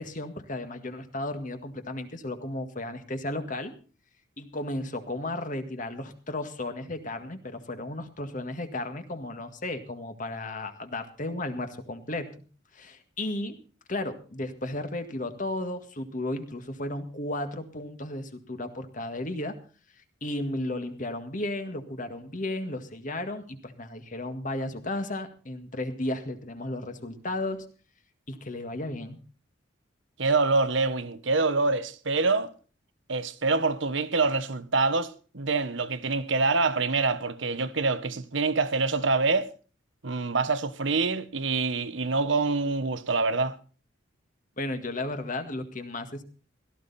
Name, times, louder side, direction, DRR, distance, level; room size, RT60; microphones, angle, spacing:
voice 1, 0.0-3.7 4.4-12.3 12.7-13.6 13.9-19.6 20.2-27.7 28.3-29.2 44.6-46.2, left 1 dB, 40° left, 1.9 m, -34 dB
voice 2, 30.2-32.5 33.1-39.5 40.0-43.6, right 3 dB, 70° right, 1.2 m, -26 dB
17.0 x 14.0 x 4.2 m
head